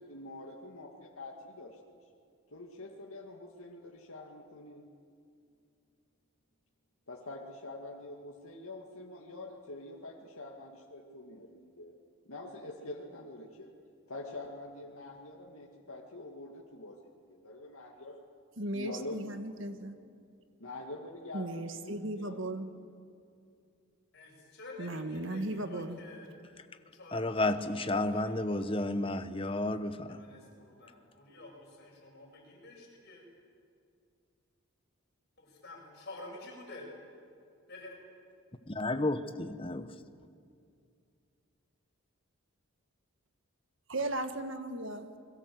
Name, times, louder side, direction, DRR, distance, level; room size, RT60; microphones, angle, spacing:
voice 1, 0.0-2.0 2.5-4.9 7.1-12.0 12.3-13.7 14.1-18.2 18.7-19.7 20.6-22.5 22.8-22.9, left 2 dB, 80° left, -1 dB, 2.2 m, -45 dB
voice 2, 18.6-20.0 21.3-22.7 24.8-26.0 43.9-45.2, right 1 dB, 60° right, 8 dB, 1.7 m, -36 dB
voice 3, 24.1-26.3 26.9-29.0 30.1-33.2 35.4-36.8 37.7-37.9, left 2 dB, 50° left, -2 dB, 7.9 m, -50 dB
voice 4, 27.1-30.2 38.7-39.9, left 2 dB, 25° left, 10 dB, 1.0 m, -32 dB
29.5 x 22.0 x 7.9 m, 2.4 s
head